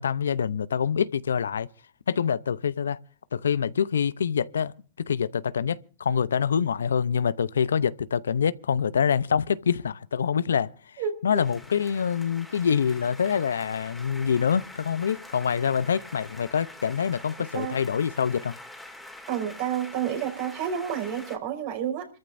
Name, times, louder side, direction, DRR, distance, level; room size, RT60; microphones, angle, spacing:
voice 1, 0.0-1.7 2.1-3.0 3.3-18.6, left 7 dB, 90° left, 0.7 m, -26 dB
voice 2, 11.0-11.4 17.5-17.8 19.3-22.1, right 9 dB, 55° right, 5.6 m, -30 dB
sound 1, 11.3-21.4, left 1 dB, 5° left, 2.8 m, -45 dB
28.0 x 14.0 x 2.6 m
hypercardioid pair, 125°, 0 cm